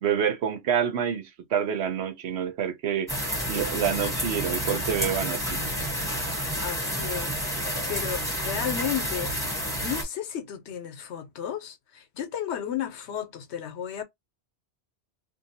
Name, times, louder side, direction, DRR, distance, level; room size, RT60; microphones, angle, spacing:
voice 1, 0.0-3.1 3.5-5.6, right 8 dB, 75° right, 0.9 m, -27 dB
sound 1, 3.1-10.0, equal, 5° left, 1.2 m, -30 dB
voice 2, 6.6-7.3 7.9-9.3 9.8-14.0, left 9 dB, 80° left, 1.0 m, -33 dB
2.6 x 2.3 x 2.7 m
omnidirectional pair, 1.1 m